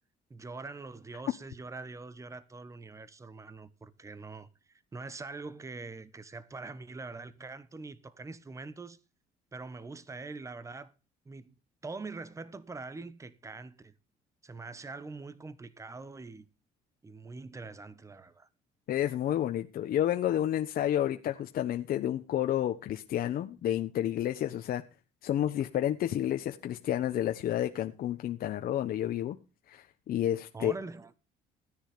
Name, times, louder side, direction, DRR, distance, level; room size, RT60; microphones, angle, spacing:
voice 1, 0.3-9.0 9.5-10.9 11.2-11.5 11.8-13.9 14.4-16.5 17.0-18.5 30.5-31.1, right 3 dB, 20° right, 1.2 m, -43 dB
voice 2, 18.9-24.8 25.2-29.4 29.7-30.7, left 11 dB, 60° left, 1.2 m, -30 dB
16.5 x 10.0 x 5.1 m
cardioid pair, 110°, 17 cm